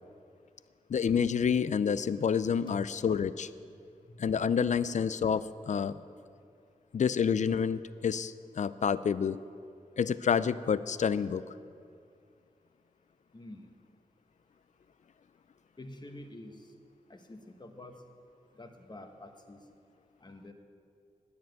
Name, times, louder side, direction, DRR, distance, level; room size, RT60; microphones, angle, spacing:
voice 1, 0.9-3.5 4.2-6.0 6.9-9.4 10.0-11.4, left 7 dB, 60° left, 15 dB, 0.4 m, -28 dB
voice 2, 13.3-13.7 15.8-16.7 17.1-18.0 18.5-19.6 20.2-20.5, left 1 dB, 30° left, 5 dB, 1.3 m, -48 dB
10.0 x 9.4 x 9.2 m, 2.4 s
wide cardioid pair, 85°, 14 cm